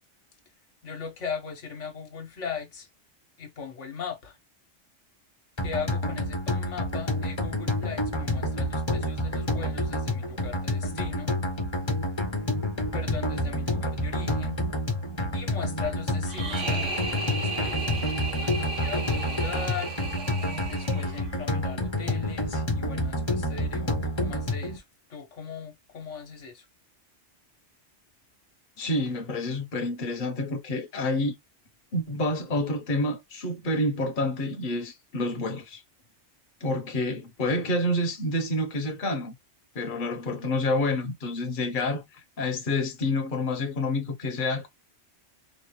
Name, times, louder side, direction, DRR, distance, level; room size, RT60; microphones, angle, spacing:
voice 1, 0.8-2.9 3.4-4.4 5.6-11.3 12.9-14.6 15.3-18.0 18.4-19.9 20.7-24.8 25.1-26.7, left 6 dB, 80° left, 1.4 m, -38 dB
sound 1, 5.6-24.8, left 1 dB, 25° left, 0.9 m, -29 dB
sound 2, 16.3-21.4, right 3 dB, 85° right, 1.5 m, -34 dB
voice 2, 28.8-31.4 31.9-35.8 36.6-39.3 39.7-42.0 42.4-44.7, left 2 dB, 45° left, 1.1 m, -28 dB
4.1 x 2.6 x 3.1 m
omnidirectional pair, 1.2 m